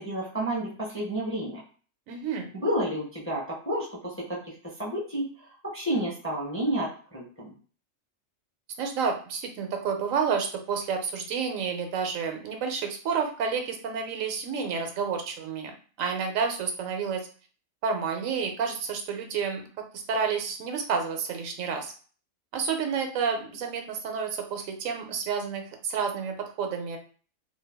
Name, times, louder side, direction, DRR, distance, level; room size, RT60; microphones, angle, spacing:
voice 1, 0.0-1.6 2.5-4.5 4.8-7.5, right 1 dB, 15° left, -5 dB, 0.6 m, -30 dB
voice 2, 2.1-2.5 8.8-17.3 17.8-19.6 19.9-21.9 22.5-27.0, right 6 dB, 85° right, 4 dB, 1.0 m, -30 dB
2.5 x 2.2 x 3.4 m, 0.40 s
omnidirectional pair, 1.3 m